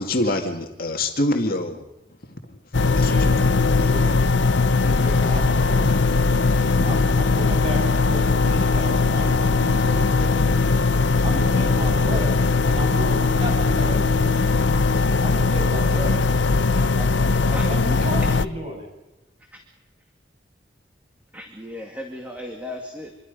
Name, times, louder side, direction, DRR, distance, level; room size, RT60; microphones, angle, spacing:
voice 1, 0.0-1.8 2.2-2.5 3.0-4.0 6.8-6.9, left 1 dB, 50° left, 4 dB, 2.1 m, -26 dB
sound 1, 2.7-18.5, left 3 dB, 80° left, 0.8 m, -19 dB
voice 2, 2.9-3.4 3.8-4.2 4.8-5.4 5.7-6.0 6.7-10.6 11.2-14.4 15.2-16.2 17.6-18.9, equal, 30° right, 1 dB, 7.4 m, -33 dB
voice 3, 4.6-6.1 16.9-17.6 19.5-19.6 21.3-23.2, left 1 dB, 10° right, 1 dB, 2.4 m, -37 dB
27.0 x 23.5 x 5.3 m, 1.0 s
head